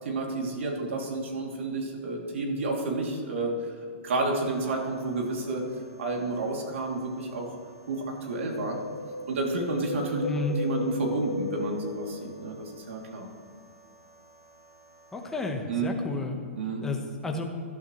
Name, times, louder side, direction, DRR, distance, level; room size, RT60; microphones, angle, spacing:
voice 1, 0.0-3.5 4.0-5.6 6.0-7.6 7.9-8.8 9.3-10.2 10.6-13.3 15.7-15.9 16.5-16.8, right 3 dB, 75° right, 0 dB, 3.0 m, -30 dB
sound 1, 4.3-15.5, right 2 dB, 30° right, 2.4 m, -56 dB
Wind, 8.4-12.7 13.0-13.1, left 4 dB, 70° left, 1.7 m, -36 dB
voice 2, 10.2-10.5 15.1-16.4 16.8-17.4, left 3 dB, 5° left, 1 dB, 1.3 m, -31 dB
17.5 x 12.0 x 3.2 m, 2.2 s
hypercardioid pair, 155°, 7 cm